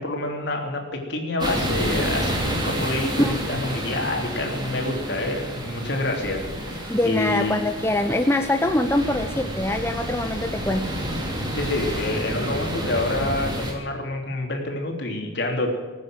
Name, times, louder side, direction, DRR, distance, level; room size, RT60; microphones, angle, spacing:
voice 1, 0.0-7.6 10.0-10.1 11.5-15.7, left 2 dB, 55° left, 2 dB, 3.4 m, -27 dB
sound 1, 1.4-13.7, equal, 20° right, 3.1 m, -29 dB
voice 2, 6.9-10.9, left 1 dB, 10° left, 6 dB, 0.7 m, -23 dB
19.0 x 9.5 x 7.7 m, 1.4 s
head